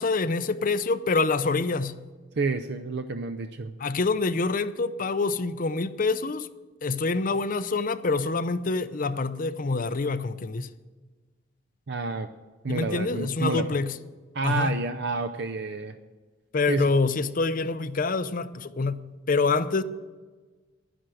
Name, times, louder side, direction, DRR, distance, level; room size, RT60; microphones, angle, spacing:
voice 1, 0.0-2.0 3.8-6.5 6.8-10.7 12.7-13.9 14.4-14.8 16.5-19.8, left 3 dB, 45° left, 0.6 m, -26 dB
voice 2, 2.4-3.7 11.9-12.3 12.6-13.7 14.3-16.0 16.7-16.8, right 4 dB, 65° right, 0.6 m, -29 dB
11.5 x 10.0 x 7.7 m
head